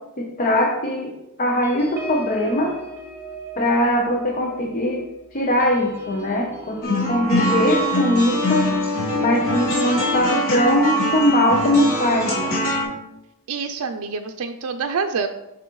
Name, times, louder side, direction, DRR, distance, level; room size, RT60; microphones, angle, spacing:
voice 1, 0.2-1.1 1.4-2.7 3.6-5.0 5.3-8.7 9.1-12.6, left 1 dB, 40° left, 0 dB, 0.8 m, -21 dB
sound 1, 1.6-10.6 11.0-11.2 11.5-11.8, right 1 dB, 10° right, 1.3 m, -40 dB
sound 2, 6.8-12.8, left 1 dB, 65° left, 2.4 m, -23 dB
voice 2, 13.5-15.3, right 5 dB, 80° right, 6 dB, 0.5 m, -26 dB
8.0 x 5.5 x 3.1 m, 0.91 s
head